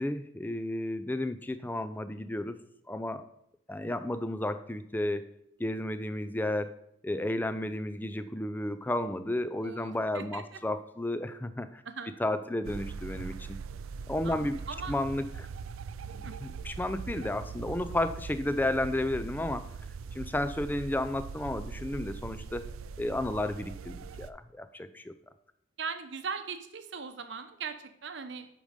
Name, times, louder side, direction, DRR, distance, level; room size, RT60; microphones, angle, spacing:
voice 1, 0.0-2.6 2.9-3.3 3.7-5.3 5.6-6.7 7.0-11.8 12.2-13.6 14.1-14.6 14.9-15.5 16.4-19.7 20.1-22.7 23.0-25.1, left 1 dB, 10° left, 11 dB, 0.4 m, -32 dB
voice 2, 9.6-10.4 11.9-12.1 14.2-14.9 16.2-16.3 25.8-28.5, right 5 dB, 60° right, 8 dB, 0.8 m, -39 dB
sound 1, 12.6-24.3, right 5 dB, 85° right, 0.4 m, -41 dB
8.3 x 5.2 x 5.1 m, 0.77 s
head